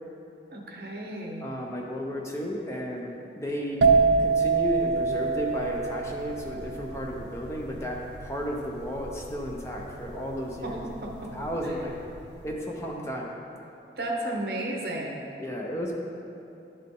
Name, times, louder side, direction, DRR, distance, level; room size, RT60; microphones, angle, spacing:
voice 1, 0.5-1.5 10.6-11.3 11.6-11.7 14.0-15.2, right 1 dB, 60° right, 0 dB, 0.9 m, -33 dB
voice 2, 1.4-3.9 4.2-10.8 11.3-12.0 12.4-13.3 15.4-15.9, equal, 15° left, -1 dB, 0.5 m, -33 dB
sound 1, 3.8-11.4 11.7-12.1, right 4 dB, 80° right, 0.5 m, -26 dB
11.0 x 3.8 x 3.7 m, 2.7 s
head